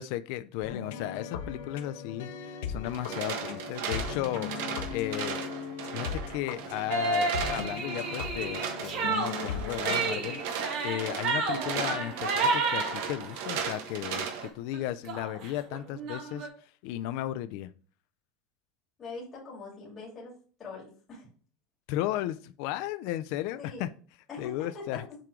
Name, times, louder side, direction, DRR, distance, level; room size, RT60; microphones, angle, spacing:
voice 1, 0.0-4.5 4.9-5.4 5.9-10.4 10.8-16.5 16.8-17.7 21.9-23.9 24.4-25.0, left 14 dB, 50° left, 11 dB, 0.3 m, -35 dB
sound 1, 0.6-10.4, left 6 dB, 85° left, 1.0 m, -38 dB
sound 2, 2.8-14.5, right 7 dB, 70° right, 1.4 m, -37 dB
sound 3, 6.9-13.7 14.2-14.5 14.7-14.8 15.0-16.5, right 3 dB, 45° right, 2.0 m, -31 dB
voice 2, 11.5-11.9 19.0-20.3 20.6-21.3 23.6-23.8 24.3-25.0, left 3 dB, 20° left, -5 dB, 2.5 m, -42 dB
7.4 x 3.7 x 4.8 m, 0.42 s
cardioid pair, 180°, 0 cm